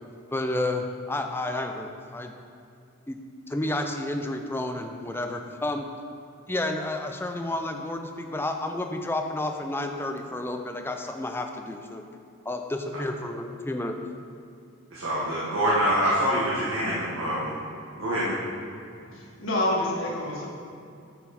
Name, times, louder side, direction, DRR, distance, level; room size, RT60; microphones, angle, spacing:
voice 1, 0.3-2.3 3.1-3.2 3.5-5.9 6.5-12.0 12.5-14.0, left 1 dB, 10° left, 5 dB, 0.4 m, -31 dB
voice 2, 14.9-17.5 18.0-18.4, equal, 85° right, -7 dB, 1.5 m, -25 dB
voice 3, 18.9-20.5, left 1 dB, 70° left, -3 dB, 1.7 m, -28 dB
8.8 x 5.9 x 4.2 m, 2.6 s
head